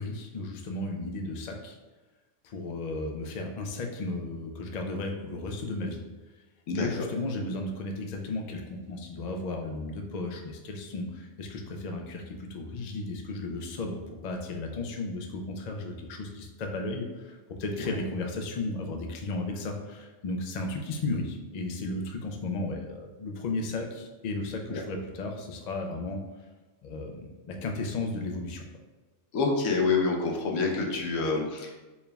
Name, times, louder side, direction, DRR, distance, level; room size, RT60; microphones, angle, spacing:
voice 1, 0.0-1.8 2.4-6.0 6.7-26.2 26.8-28.7, left 2 dB, 65° left, 2 dB, 0.4 m, -34 dB
voice 2, 29.3-31.9, left 4 dB, 85° left, 1 dB, 1.0 m, -27 dB
4.4 x 3.3 x 2.2 m, 1.2 s
omnidirectional pair, 1.3 m